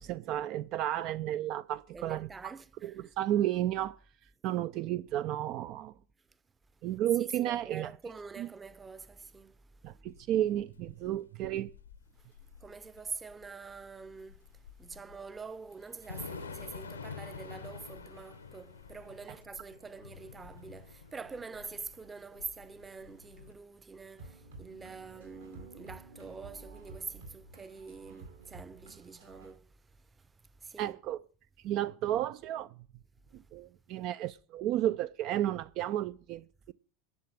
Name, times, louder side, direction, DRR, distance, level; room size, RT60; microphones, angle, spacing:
voice 1, 0.0-2.5 2.8-3.9 4.4-5.9 6.8-7.9 8.4-8.5 9.8-11.7 30.8-31.2 31.6-32.7 33.3-36.7, right 12 dB, 50° right, 0.5 m, -32 dB
voice 2, 1.9-3.1 7.2-10.1 12.2-30.3 30.6-31.0, right 4 dB, 20° right, 0.8 m, -46 dB
Thunder / Rain, 10.1-23.5, left 5 dB, 85° left, 1.1 m, -48 dB
sound 1, 24.2-29.5, right 3 dB, 75° right, 4.4 m, -51 dB
11.0 x 7.4 x 8.7 m
figure-of-eight pair, 80°, 0 cm